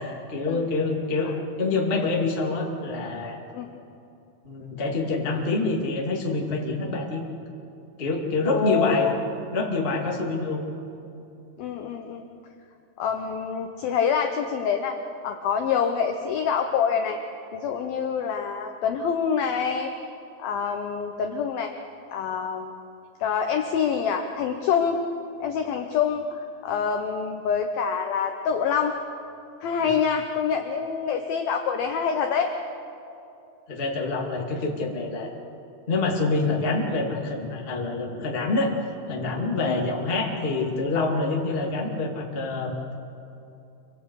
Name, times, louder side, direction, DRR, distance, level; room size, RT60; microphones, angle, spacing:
voice 1, 0.3-1.3 1.6-3.4 4.4-7.2 8.0-9.1 9.5-10.6 29.8-29.9 33.7-35.3 35.9-38.7 39.1-42.8, left 3 dB, 25° left, -1 dB, 1.3 m, -26 dB
voice 2, 8.5-9.1 11.6-12.2 13.0-15.0 15.2-17.2 17.5-19.9 20.4-21.7 22.1-22.7 23.2-25.0 25.4-26.2 26.6-28.9 29.6-32.5 39.6-39.8, left 7 dB, 80° left, 5 dB, 2.1 m, -26 dB
28.0 x 24.5 x 4.8 m, 2.7 s
omnidirectional pair, 5.6 m